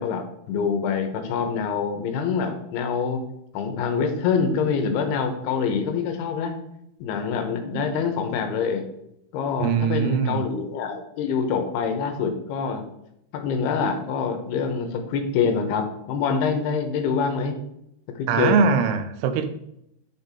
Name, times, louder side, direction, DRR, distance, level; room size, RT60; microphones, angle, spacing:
voice 1, 0.0-3.2 3.5-6.6 7.0-8.9 9.3-12.8 13.3-17.5 18.2-18.6, left 6 dB, 90° left, 6 dB, 2.9 m, -25 dB
voice 2, 9.6-10.5 18.3-19.5, right 6 dB, 85° right, 10 dB, 2.7 m, -22 dB
8.8 x 5.7 x 3.5 m, 0.79 s
omnidirectional pair, 4.6 m